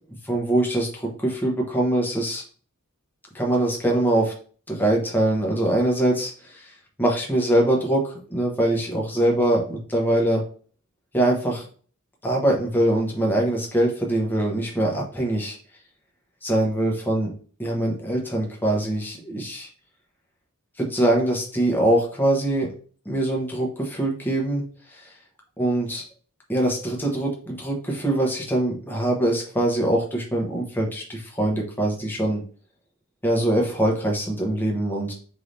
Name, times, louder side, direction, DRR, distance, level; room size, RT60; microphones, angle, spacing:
voice 1, 0.2-2.4 3.3-4.3 4.7-10.4 11.1-11.7 12.2-15.6 16.4-17.3 17.6-19.7 20.8-22.7 23.0-25.1 25.6-26.0 26.5-32.4 33.2-35.1, right 1 dB, 10° left, -2 dB, 1.0 m, -23 dB
4.7 x 3.4 x 2.6 m, 0.43 s
head